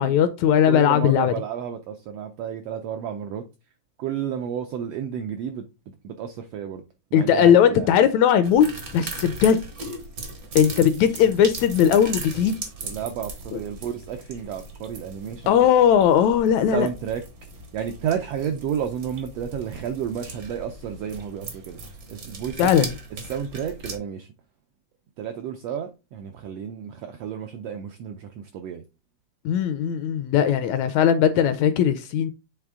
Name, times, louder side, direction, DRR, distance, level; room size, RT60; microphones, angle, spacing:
voice 1, 0.0-1.3 7.1-8.7 8.9-9.6 10.6-12.6 15.5-16.9 22.6-22.9 29.5-32.3, left 9 dB, 80° left, 1.7 m, -18 dB
voice 2, 0.6-3.4 4.0-5.7 6.0-6.8 7.1-7.9 12.8-15.7 16.7-17.2 17.7-22.9 23.2-24.3 25.2-28.8, right 8 dB, 85° right, 1.4 m, -31 dB
sound 1, 8.4-24.0, right 3 dB, 70° right, 0.8 m, -38 dB
8.0 x 3.3 x 3.6 m
omnidirectional pair, 3.5 m